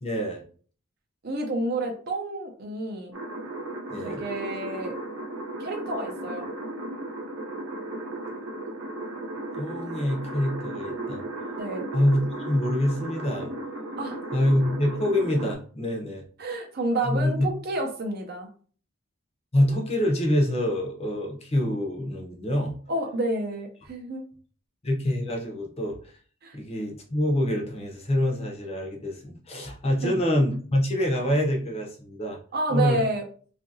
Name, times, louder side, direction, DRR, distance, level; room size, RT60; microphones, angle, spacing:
voice 1, 0.0-0.4 3.9-4.2 9.5-11.2 11.9-13.5 14.3-16.2 17.0-17.5 19.5-22.7 24.8-26.0 26.5-32.4 32.7-33.0, left 1 dB, 30° left, 0 dB, 0.6 m, -26 dB
voice 2, 1.2-3.1 4.0-4.9 5.6-6.5 11.6-11.9 14.0-14.2 16.4-18.5 22.9-24.2 26.4-26.6 30.0-30.2 32.5-33.2, right 2 dB, 45° right, 3 dB, 0.5 m, -29 dB
sound 1, 3.1-15.5, right 2 dB, 80° right, 0.8 m, -35 dB
2.7 x 2.4 x 2.6 m, 0.43 s
head